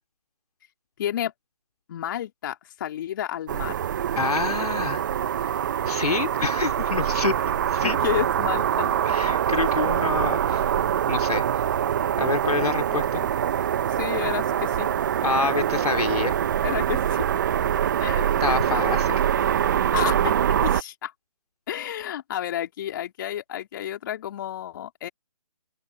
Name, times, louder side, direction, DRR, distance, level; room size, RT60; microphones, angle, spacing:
voice 1, 1.0-1.3 1.9-3.8 7.8-8.9 12.9-13.3 13.9-14.9 15.4-15.6 16.6-17.2 18.0-18.8 19.9-20.3 20.6-21.1 21.7-25.1, left 11 dB, 35° left, 3.4 m, -31 dB
sound 1, 3.5-20.8, right 9 dB, 30° right, 0.8 m, -24 dB
voice 2, 4.1-5.0 5.3-5.6 5.8-7.4 7.7-8.0 9.0-10.6 11.1-11.7 12.2-13.2 15.2-16.3 18.4-19.2, left 4 dB, 75° left, 3.1 m, -27 dB
open air
figure-of-eight pair, 150°, 20 cm